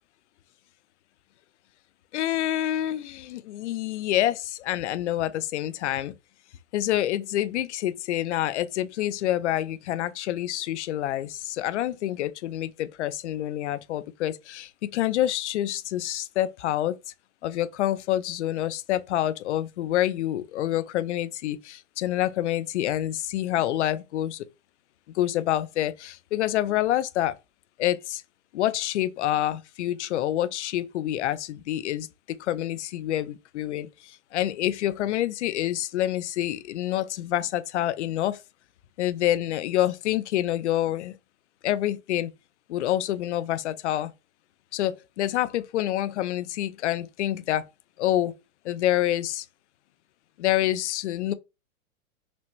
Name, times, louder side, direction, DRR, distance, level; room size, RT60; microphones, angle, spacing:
voice 1, 2.1-6.1 6.7-17.0 17.4-24.4 25.2-27.3 27.8-28.2 28.5-32.1 32.4-33.9 34.3-38.4 39.0-41.1 41.6-42.3 42.7-44.1 44.7-47.6 48.0-48.3 48.7-49.4 50.4-51.3, left 13 dB, 55° left, 0.5 m, -27 dB
6.0 x 2.2 x 3.0 m
supercardioid pair, 165°, 42 cm